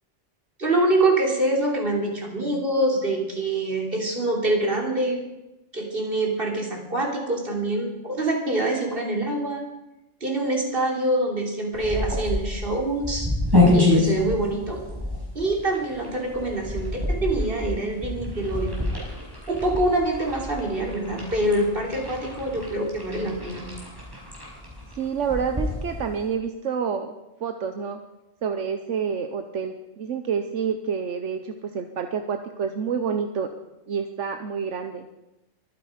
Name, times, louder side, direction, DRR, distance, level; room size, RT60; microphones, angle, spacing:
voice 1, 0.6-5.2 5.7-9.6 10.2-13.3 13.7-14.8 15.3-18.7 19.5-23.6, right 1 dB, 50° right, 0 dB, 3.4 m, -25 dB
sound 1, 11.7-26.3, left 2 dB, 20° right, 5.7 m, -27 dB
voice 2, 24.9-27.1 27.4-28.0 28.4-33.5 33.9-35.1, right 6 dB, 80° right, 7 dB, 1.3 m, -28 dB
23.5 x 10.0 x 5.1 m, 0.97 s
omnidirectional pair, 1.2 m